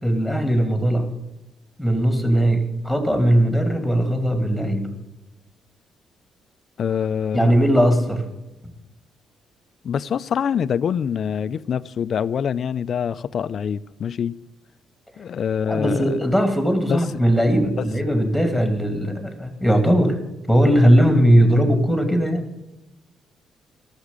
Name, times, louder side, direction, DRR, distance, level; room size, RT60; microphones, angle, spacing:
voice 1, 0.0-1.1 1.8-4.9 7.3-8.2 15.7-20.2 20.5-22.5, equal, 5° right, 2.4 m, -19 dB
voice 2, 6.8-7.5 9.8-14.4 15.2-16.2 16.9-17.0 17.8-17.9, left 7 dB, 55° left, 0.4 m, -25 dB
13.0 x 6.4 x 8.3 m
cardioid pair, 90°, 0 cm